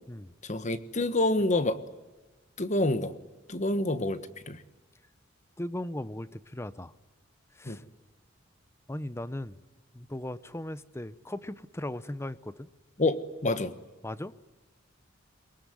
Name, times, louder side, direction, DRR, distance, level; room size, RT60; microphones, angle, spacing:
voice 1, 0.4-1.8 2.6-3.2 3.5-4.6 7.6-7.8 13.0-13.7, left 2 dB, 35° left, 12 dB, 1.4 m, -28 dB
voice 2, 5.6-6.9 7.5-7.8 8.9-9.6 9.9-12.7 14.0-14.3, left 1 dB, 15° left, 16 dB, 0.7 m, -38 dB
23.0 x 22.0 x 9.6 m, 1.2 s
head